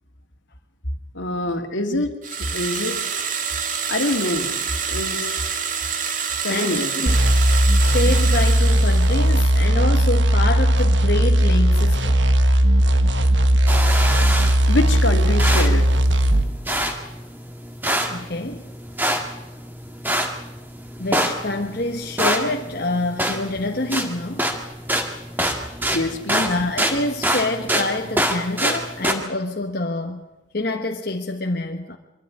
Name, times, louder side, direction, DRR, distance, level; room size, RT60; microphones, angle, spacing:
voice 1, 1.1-2.1 2.4-3.2 3.9-4.6 4.9-5.3 6.4-6.9 14.7-15.8 25.9-26.5, left 2 dB, 75° left, 6 dB, 2.2 m, -25 dB
sound 1, 2.2-9.6, right 6 dB, 40° right, 1.7 m, -27 dB
voice 2, 6.5-7.2 7.8-12.2 18.1-18.7 21.0-24.5 26.4-30.2 30.5-32.0, left 2 dB, 50° left, 2 dB, 1.2 m, -26 dB
sound 2, 7.1-16.5, equal, 70° right, 1.3 m, -17 dB
sound 3, 13.7-29.1, equal, 10° right, 1.9 m, -26 dB
23.5 x 13.0 x 9.7 m, 1.0 s
head